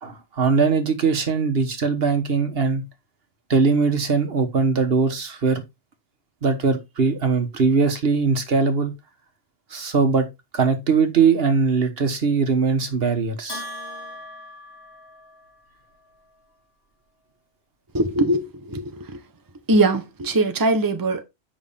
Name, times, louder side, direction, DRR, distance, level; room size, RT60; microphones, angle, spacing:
voice 1, 0.0-2.8 3.5-5.6 6.4-9.0 9.7-10.3 10.5-13.6, right 5 dB, 65° right, 1.5 m, -21 dB
Bell, 13.5-15.6, left 1 dB, 80° left, 3.0 m, -38 dB
voice 2, 17.9-19.2 19.7-21.2, right 2 dB, 20° right, 0.8 m, -21 dB
7.9 x 5.6 x 3.4 m
omnidirectional pair, 1.1 m